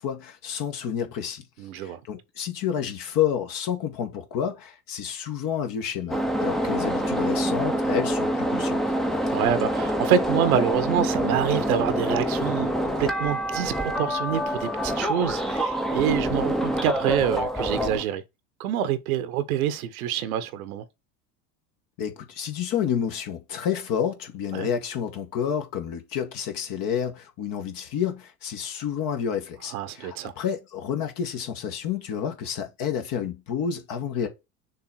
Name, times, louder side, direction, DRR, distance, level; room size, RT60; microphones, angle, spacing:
voice 1, 0.0-1.4 1.8-8.8 22.0-34.3, left 8 dB, 45° left, 2.0 m, -29 dB
voice 2, 1.6-2.0 9.3-12.7 13.0-18.2 18.6-20.8 24.5-24.7 29.7-30.3, right 9 dB, 65° right, 1.2 m, -26 dB
sound 1, 6.1-18.0, equal, ahead, 0.9 m, -26 dB
6.6 x 3.5 x 4.3 m
figure-of-eight pair, 75°, 46 cm